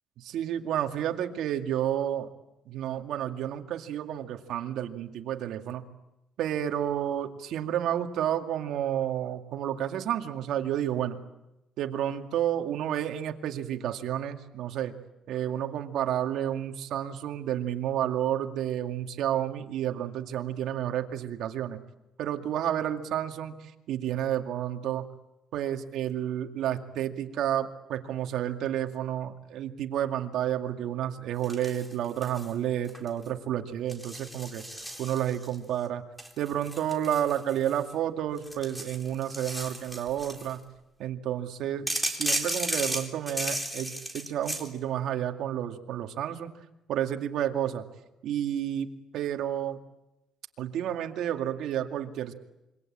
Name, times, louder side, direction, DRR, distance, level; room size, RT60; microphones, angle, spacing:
voice 1, 0.2-2.3 2.7-5.8 6.4-11.2 11.8-14.9 15.3-21.8 22.2-25.1 25.5-34.6 35.0-36.0 36.4-40.6 41.0-46.5 46.9-47.8 48.2-48.9 49.1-49.8 50.6-52.3, right 10 dB, 70° right, 5 dB, 2.2 m, -30 dB
sound 1, 31.4-32.5 32.8-33.3 33.9-35.5 36.2-37.9 38.4-40.5 41.9-44.7, right 1 dB, ahead, 3.9 m, -34 dB
26.5 x 24.5 x 8.7 m, 0.94 s
cardioid pair, 120°, 0 cm